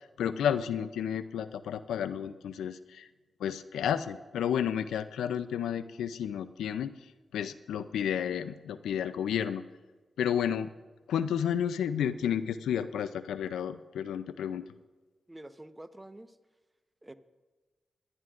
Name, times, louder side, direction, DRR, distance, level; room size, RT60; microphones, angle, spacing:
voice 1, 0.0-3.1 3.4-7.0 7.3-9.6 10.2-10.7 11.1-14.7, left 9 dB, 90° left, 13 dB, 0.4 m, -31 dB
voice 2, 15.3-16.3 17.0-17.1, right 1 dB, 20° right, 10 dB, 1.0 m, -47 dB
25.0 x 11.0 x 2.5 m, 1.3 s
supercardioid pair, 45°, 0 cm